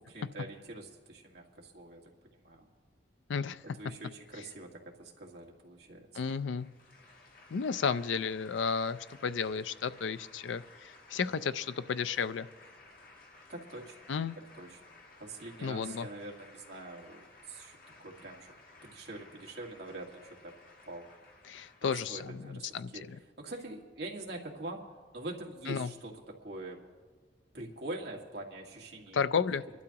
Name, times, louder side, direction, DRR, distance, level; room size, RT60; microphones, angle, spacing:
voice 1, 0.0-2.0 2.4-2.6 3.8-6.1 13.5-14.0 14.4-14.8 15.2-18.5 18.8-20.5 20.8-21.1 21.8-23.1 23.4-24.9 25.1-26.8 27.5-29.4, right 2 dB, 60° right, -1 dB, 1.9 m, -44 dB
voice 2, 6.1-6.7 7.5-12.5 14.1-14.4 15.6-16.1 21.5-23.2 25.7-25.9 29.1-29.6, left 6 dB, 85° left, 14 dB, 0.4 m, -33 dB
sound 1, 6.3-22.3, left 3 dB, 50° left, 1.5 m, -57 dB
25.0 x 12.0 x 2.9 m, 1.5 s
head